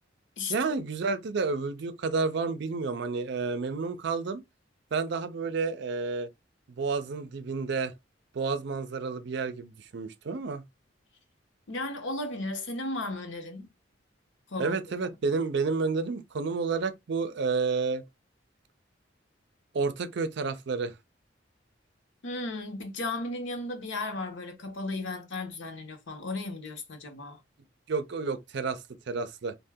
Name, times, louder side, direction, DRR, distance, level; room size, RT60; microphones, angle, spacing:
voice 1, 0.5-4.4 4.9-6.3 6.7-7.9 8.3-10.6 14.6-18.0 19.7-20.9 27.9-29.5, right 4 dB, 65° right, 0.5 m, -30 dB
voice 2, 11.7-13.7 14.5-14.8 22.2-27.4, left 2 dB, 75° left, 0.8 m, -35 dB
2.7 x 2.1 x 3.4 m
head